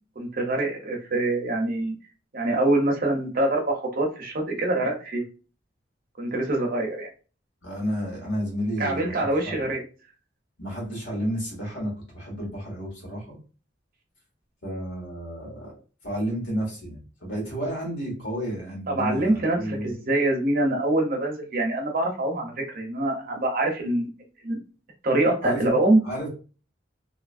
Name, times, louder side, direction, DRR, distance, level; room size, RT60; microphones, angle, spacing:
voice 1, 0.2-1.9 2.3-5.2 6.2-7.1 8.8-9.8 18.9-24.1 24.4-24.6 25.0-26.0, right 2 dB, 50° right, 1 dB, 0.7 m, -24 dB
voice 2, 7.6-9.7 10.6-13.4 14.6-15.7 16.0-19.9 25.4-25.7 26.0-26.3, equal, 80° left, -3 dB, 1.5 m, -31 dB
2.8 x 2.4 x 2.5 m, 0.36 s
head